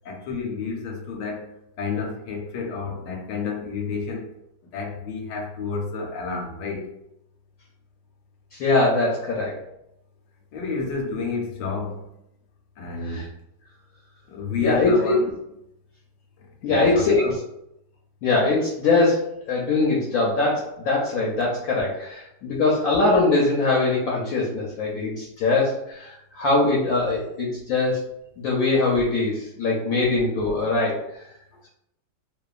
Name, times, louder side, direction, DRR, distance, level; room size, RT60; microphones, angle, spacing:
voice 1, 0.0-1.5 1.8-4.3 4.7-6.9 10.5-12.0 12.8-13.3 14.3-15.3 16.6-17.3, left 4 dB, 85° left, 1 dB, 1.3 m, -30 dB
voice 2, 8.5-9.6 13.0-13.3 14.6-15.1 16.6-17.4 18.2-28.1 28.4-31.0, left 3 dB, 70° left, -3 dB, 0.9 m, -22 dB
2.9 x 2.2 x 2.3 m, 0.81 s
omnidirectional pair, 1.9 m